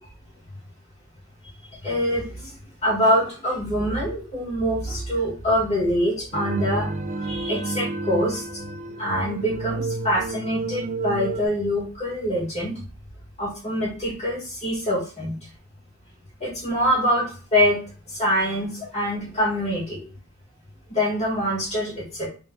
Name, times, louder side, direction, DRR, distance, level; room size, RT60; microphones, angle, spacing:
voice 1, 1.8-2.5 2.8-6.9 7.2-8.4 9.0-12.8 13.4-15.3 16.4-17.8 18.2-20.0 20.9-22.3, equal, 35° left, -4 dB, 1.7 m, -24 dB
sound 1, 6.3-11.5, right 3 dB, 35° right, 0.4 m, -30 dB
3.4 x 2.6 x 4.5 m, 0.37 s
head